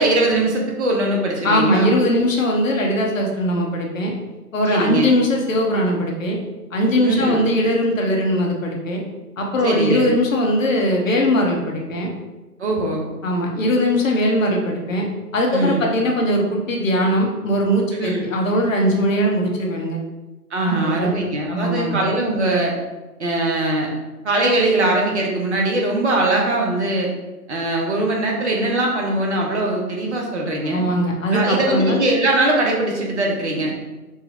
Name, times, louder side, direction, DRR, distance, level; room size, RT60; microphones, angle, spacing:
voice 1, 0.0-1.9 4.7-5.1 7.0-7.4 9.6-10.1 12.6-13.1 15.5-15.8 17.9-18.3 20.5-22.7 23.2-23.9 24.2-27.1 27.5-30.9 31.3-33.7, right 2 dB, 45° right, -1 dB, 1.0 m, -21 dB
voice 2, 1.4-4.1 4.5-6.4 6.7-9.0 9.4-12.1 13.2-15.1 15.3-20.0 20.6-21.1 21.5-21.9 30.6-32.0, equal, 55° left, 0 dB, 1.0 m, -20 dB
4.7 x 2.3 x 4.2 m, 1.1 s
figure-of-eight pair, 140°, 48 cm